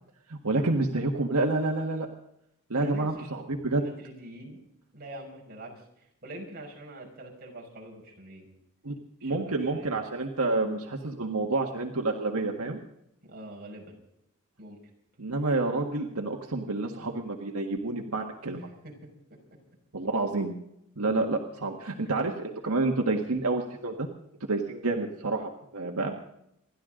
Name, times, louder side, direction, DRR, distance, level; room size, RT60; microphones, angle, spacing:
voice 1, 0.3-2.1 2.7-3.8 8.8-8.9 9.2-12.8 15.2-18.7 19.9-20.5 21.0-24.1 24.5-26.1, right 2 dB, 85° right, 2 dB, 1.6 m, -29 dB
voice 2, 2.7-3.5 3.8-4.6 4.9-8.5 9.2-9.9 13.3-13.9 14.6-14.8 18.5-18.9 22.0-22.3, right 1 dB, 45° right, -1 dB, 5.6 m, -44 dB
28.0 x 12.0 x 3.8 m, 0.79 s
head